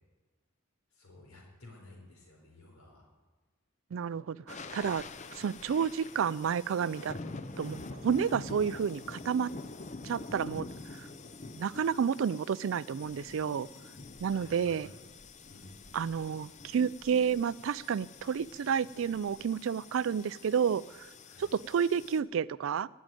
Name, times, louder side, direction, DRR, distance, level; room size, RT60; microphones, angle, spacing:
voice 1, 0.9-3.0 7.1-7.3 14.2-14.9 15.5-15.8 21.2-21.5, left 2 dB, 80° left, 0 dB, 4.8 m, -53 dB
voice 2, 3.9-5.0 5.3-7.1 7.6-9.5 10.0-11.1 11.5-13.7 14.2-14.9 15.9-21.1 21.4-22.9, right 7 dB, 60° right, 21 dB, 0.3 m, -30 dB
sound 1, 4.5-22.2, left 3 dB, 35° left, 0.7 m, -46 dB
19.0 x 6.5 x 9.1 m, 1.3 s
head